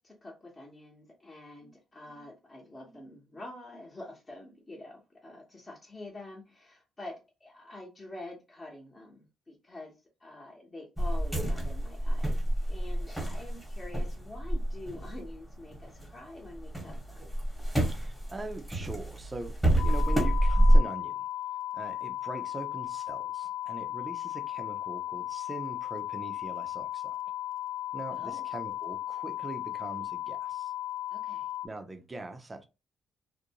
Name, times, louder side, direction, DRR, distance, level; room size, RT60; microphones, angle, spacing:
voice 1, 0.0-9.9 10.2-17.3 28.1-28.5 31.1-31.5, left 2 dB, 25° left, 1.0 m, -47 dB
sound 1, 11.0-16.1 16.4-20.8, equal, 5° left, 1.1 m, -27 dB
voice 2, 17.9-21.2 21.7-27.1 27.9-30.7 31.6-32.6, right 2 dB, 20° right, 0.6 m, -42 dB
sound 2, 19.8-31.7, left 14 dB, 50° left, 0.3 m, -36 dB
2.5 x 2.1 x 2.8 m
cardioid pair, 90°, 0 cm